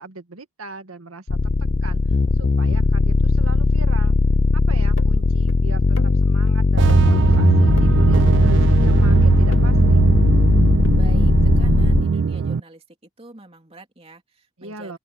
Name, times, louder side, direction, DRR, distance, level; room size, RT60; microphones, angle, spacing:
voice 1, 0.0-1.5 1.8-2.0 2.3-4.2 4.5-10.0 14.6-15.0, right 2 dB, 80° right, 1.9 m, -38 dB
sound 1, 1.3-12.0, left 3 dB, 40° left, 0.4 m, -18 dB
sound 2, 5.0-5.1 5.5-5.6 6.0-6.5 6.9-7.0 7.3-7.4 7.8-7.9 8.3-8.4 9.5-9.7 10.8-10.9, left 1 dB, 60° left, 2.6 m, -37 dB
sound 3, 6.8-12.6, right 5 dB, 55° right, 0.4 m, -19 dB
voice 2, 10.9-12.8 13.2-15.0, right 1 dB, 25° right, 3.1 m, -44 dB
open air
head